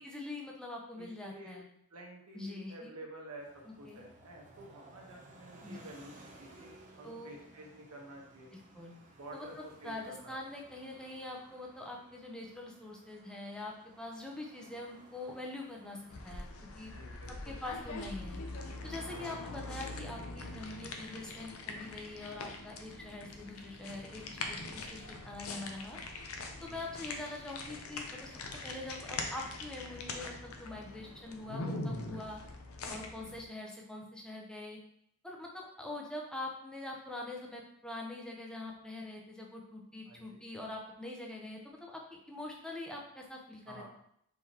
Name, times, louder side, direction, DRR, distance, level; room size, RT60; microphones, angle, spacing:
voice 1, 0.0-1.6 2.3-2.9 3.6-4.0 5.6-5.9 7.0-7.3 8.5-9.0 9.3-16.5 16.8-17.0 17.3-18.4 18.8-26.0 26.6-28.3 28.6-32.4 32.9-34.8 35.2-43.8, left 2 dB, 5° left, -1 dB, 0.7 m, -44 dB
voice 2, 1.0-1.6 1.9-6.7 7.0-8.5 9.1-10.3 16.9-17.6 19.1-19.3 26.7-26.9 40.1-40.4 43.7-43.9, right 1 dB, 85° right, 0 dB, 1.1 m, -50 dB
sound 1, 3.4-21.5, right 2 dB, 35° right, 0.7 m, -59 dB
sound 2, 16.1-33.4, left 2 dB, 65° left, 0.6 m, -43 dB
4.7 x 3.9 x 2.9 m, 0.72 s
head